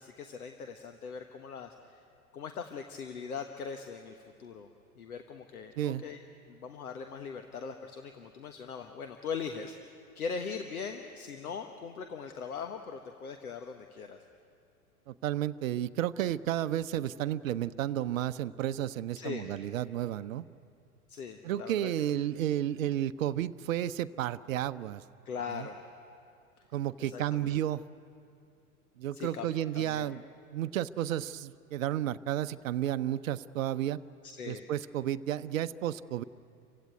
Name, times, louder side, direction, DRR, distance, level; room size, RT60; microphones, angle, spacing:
voice 1, 0.0-2.0 2.3-4.7 5.0-6.2 6.5-14.2 19.2-19.5 21.1-21.9 25.2-25.8 27.0-27.5 29.1-30.1 34.2-34.7, left 6 dB, 70° left, 6 dB, 1.4 m, -40 dB
voice 2, 15.1-20.4 21.4-25.0 25.5-25.7 26.7-27.8 29.0-30.2 30.5-34.0 34.4-36.2, right 12 dB, 60° right, 12 dB, 0.7 m, -32 dB
29.0 x 16.5 x 9.4 m, 2.6 s
figure-of-eight pair, 95°, 45 cm